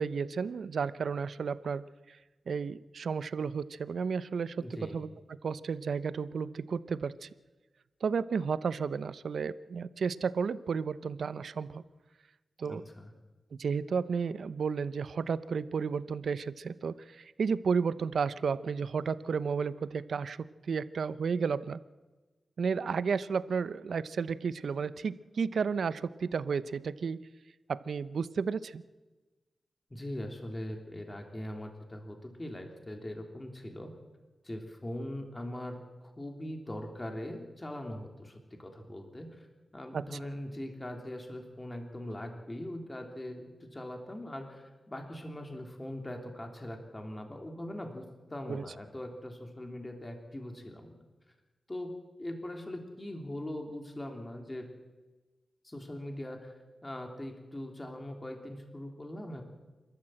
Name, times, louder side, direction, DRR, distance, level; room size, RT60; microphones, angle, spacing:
voice 1, 0.0-2.2 2.5-5.1 5.4-7.3 8.0-11.8 12.6-12.8 13.6-21.8 22.6-27.2 27.7-28.8 39.9-40.0 48.5-48.6, right 5 dB, 80° right, 16 dB, 0.7 m, -32 dB
voice 2, 4.6-5.0 12.6-13.1 29.9-33.9 34.4-39.5 39.7-51.0 51.7-51.9 52.2-54.6 55.6-56.5 56.8-59.4, left 1 dB, 25° left, 3 dB, 3.2 m, -41 dB
28.0 x 13.0 x 7.8 m, 1.2 s
cardioid pair, 60°, 0 cm